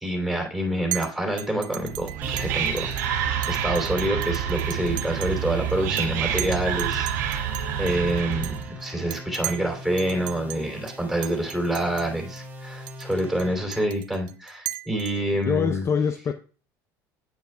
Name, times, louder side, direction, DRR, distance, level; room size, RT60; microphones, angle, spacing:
voice 1, 0.0-7.5 7.8-15.8, right 1 dB, ahead, 3.0 m, -27 dB
Chink clink, 0.9-1.1 1.4-3.1 3.4-5.4 5.7-6.1 6.4-9.7 10.0-10.6 10.9-11.0 11.2-12.1 12.4-12.5 12.9-15.4, right 16 dB, 65° right, 0.6 m, -36 dB
Whispering, 1.8-8.7, right 9 dB, 90° right, 1.1 m, -28 dB
sound 1, 2.2-13.6, left 1 dB, 20° right, 2.2 m, -41 dB
voice 2, 15.3-16.3, left 6 dB, 30° left, 0.5 m, -24 dB
9.1 x 8.0 x 2.3 m
supercardioid pair, 95°, 9 cm